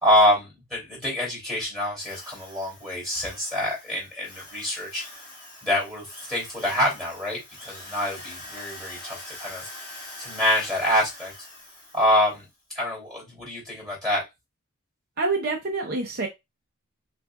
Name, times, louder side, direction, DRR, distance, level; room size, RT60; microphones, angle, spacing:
voice 1, 0.0-5.0 5.6-9.7 10.2-11.3 11.9-12.4 12.7-14.2, left 1 dB, ahead, 2.9 m, -26 dB
Drill, 2.0-12.4, left 1 dB, 20° left, 2.9 m, -44 dB
voice 2, 15.2-16.3, right 3 dB, 45° right, 0.7 m, -26 dB
6.1 x 2.6 x 2.3 m
head